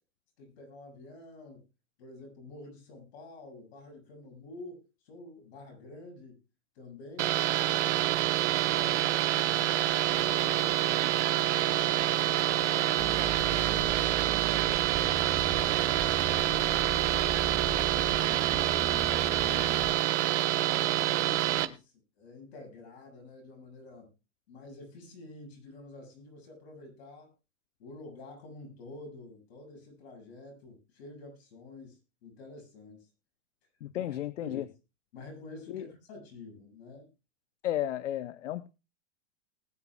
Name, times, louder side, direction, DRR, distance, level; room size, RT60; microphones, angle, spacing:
voice 1, 0.4-1.6 2.0-6.4 6.8-12.0 12.5-17.3 18.2-20.2 20.6-24.1 24.5-27.3 27.8-33.1 34.0-34.7 35.1-37.1, left 2 dB, 60° left, 2 dB, 7.3 m, -49 dB
sound 1, 7.2-21.7, right 13 dB, 75° right, 1.2 m, -27 dB
sound 2, 13.0-20.0, right 5 dB, 15° right, 2.4 m, -38 dB
voice 2, 33.8-34.6 35.7-35.9 37.6-38.7, left 12 dB, 85° left, 15 dB, 0.8 m, -33 dB
20.0 x 9.8 x 2.4 m, 0.28 s
hypercardioid pair, 135°, 36 cm